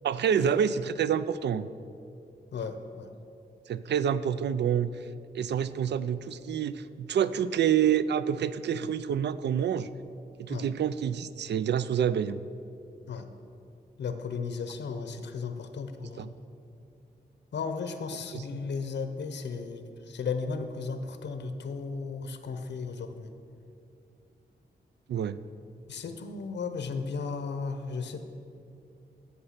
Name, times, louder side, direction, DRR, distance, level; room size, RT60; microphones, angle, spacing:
voice 1, 0.0-1.7 3.7-4.9 5.3-9.9 10.4-12.4 16.2-16.3 18.3-18.6 25.1-25.4, right 8 dB, 75° right, 15 dB, 0.4 m, -27 dB
voice 2, 2.5-3.1 10.5-10.7 13.1-13.3 14.0-16.3 17.5-23.3 25.9-28.3, left 5 dB, 90° left, 8 dB, 0.8 m, -35 dB
14.5 x 5.5 x 5.8 m, 2.6 s
wide cardioid pair, 125°, 18 cm